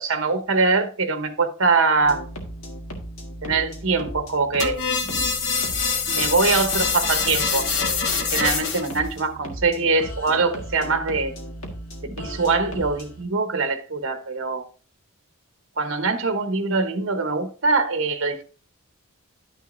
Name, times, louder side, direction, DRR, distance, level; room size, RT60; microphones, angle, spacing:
voice 1, 0.0-2.2 3.4-5.3 6.1-11.3 12.0-14.6 15.8-18.4, right 4 dB, 60° right, 1.0 m, -23 dB
sound 1, 2.0-13.2, equal, 70° left, 1.7 m, -36 dB
sound 2, 4.6-9.0, left 5 dB, 55° left, 1.1 m, -24 dB
11.0 x 6.4 x 2.6 m
head